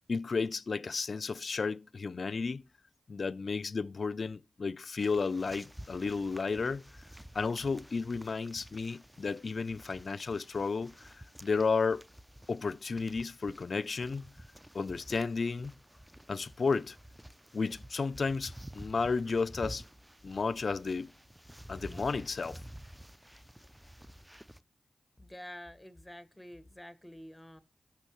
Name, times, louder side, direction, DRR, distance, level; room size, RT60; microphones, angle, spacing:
voice 1, 0.1-2.6 3.1-6.8 7.3-11.1 11.4-12.0 12.5-14.3 14.7-15.7 16.3-17.0 17.5-19.8 20.2-21.1 21.7-22.6, left 4 dB, 65° left, 0.5 m, -33 dB
sound 1, 5.0-24.6, equal, 5° right, 0.6 m, -51 dB
voice 2, 25.2-27.6, left 1 dB, 10° left, 1.4 m, -48 dB
14.0 x 6.0 x 3.1 m
cardioid pair, 40°, 0 cm